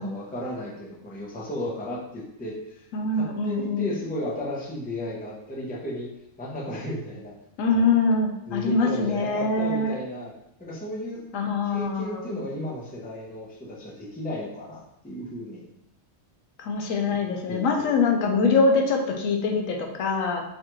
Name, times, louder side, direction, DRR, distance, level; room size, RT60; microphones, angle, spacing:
voice 1, 0.0-2.8 3.1-7.3 7.7-8.0 8.5-10.3 10.6-11.3 11.6-15.7 17.2-17.9, left 1 dB, 10° left, -4 dB, 0.5 m, -34 dB
voice 2, 2.9-3.9 7.6-9.9 11.3-12.4 16.6-20.4, left 3 dB, 85° left, 2 dB, 1.0 m, -24 dB
4.7 x 2.3 x 3.0 m, 0.81 s
omnidirectional pair, 1.4 m